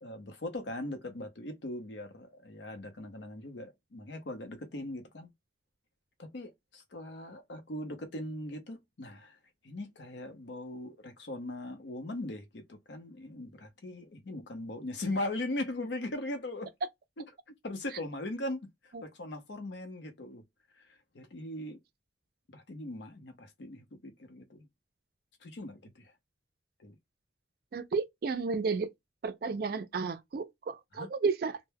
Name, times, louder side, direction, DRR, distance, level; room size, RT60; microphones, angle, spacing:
voice 1, 0.0-5.3 6.2-9.4 9.6-16.7 17.2-17.3 17.6-20.4 20.8-21.8 22.5-24.7 25.4-26.1 26.8-27.0 30.9-31.1, left 1 dB, 80° left, 0.7 m, -40 dB
voice 2, 27.7-28.9 29.2-31.6, right 4 dB, 55° right, 0.3 m, -32 dB
2.1 x 2.1 x 3.2 m
head